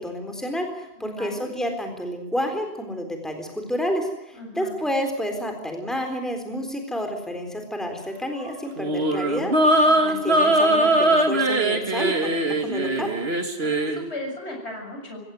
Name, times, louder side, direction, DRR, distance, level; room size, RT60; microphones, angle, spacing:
voice 1, 0.0-13.1, equal, ahead, 4 dB, 3.9 m, -30 dB
voice 2, 1.0-1.5 4.3-4.8 9.8-10.2 13.6-15.2, left 1 dB, 85° left, 0 dB, 7.5 m, -36 dB
sound 1, 8.8-14.0, right 1 dB, 70° right, 2.5 m, -21 dB
24.5 x 17.0 x 9.4 m, 0.90 s
omnidirectional pair, 1.1 m